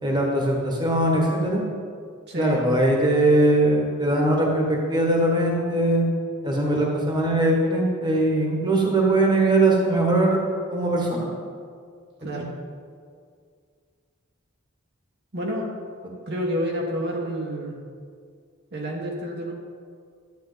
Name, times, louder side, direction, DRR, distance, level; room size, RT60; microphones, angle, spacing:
voice 1, 0.0-1.6 2.4-6.0 6.4-10.4 10.7-11.3 12.3-12.4, right 1 dB, 20° right, -1 dB, 1.5 m, -21 dB
voice 2, 2.3-2.7 12.2-12.5 15.3-15.7 16.3-17.8 18.7-19.5, equal, 50° right, -1 dB, 1.3 m, -29 dB
11.5 x 8.4 x 4.0 m, 2.1 s
head